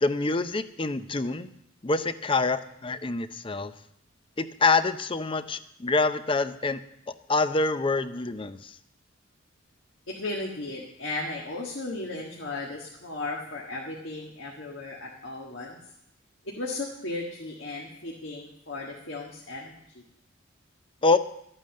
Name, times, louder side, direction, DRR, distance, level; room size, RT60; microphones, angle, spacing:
voice 1, 0.0-1.5 1.8-3.7 4.4-6.8 7.3-8.7 21.0-21.2, left 3 dB, 25° left, 12 dB, 0.5 m, -26 dB
voice 2, 10.1-15.8 16.4-19.8, left 2 dB, 65° left, -1 dB, 1.6 m, -35 dB
13.0 x 8.9 x 6.4 m, 0.76 s
head